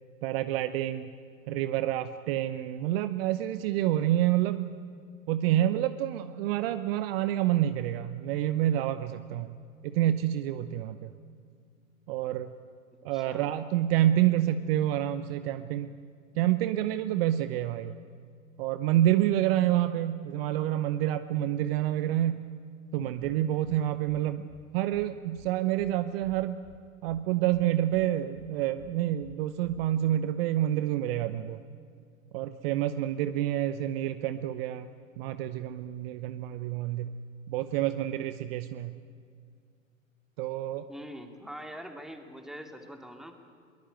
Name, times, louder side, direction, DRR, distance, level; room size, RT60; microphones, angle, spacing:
voice 1, 0.2-1.1 1.5-4.7 5.3-9.5 9.8-11.1 12.1-12.5 13.0-15.9 16.3-17.9 18.6-22.5 22.9-24.5 24.7-26.6 27.0-31.6 32.3-34.9 35.2-37.1 37.5-38.9 40.4-40.8, right 12 dB, 45° right, 12 dB, 1.0 m, -28 dB
voice 2, 13.1-13.5 40.9-43.3, equal, ahead, 5 dB, 2.4 m, -43 dB
sound 1, 23.2-23.3 23.6-23.8 24.1-24.2 24.5-24.6 24.9-25.1 25.4-25.5 25.8-25.9 26.2-26.8 27.1-27.2 27.5-27.6 27.9-28.1 28.4-28.5 28.8-28.9 29.2-29.3 29.6-29.9, left 13 dB, 55° left, 1.7 m, -53 dB
22.5 x 20.0 x 9.1 m, 2.2 s
hypercardioid pair, 105°, 42 cm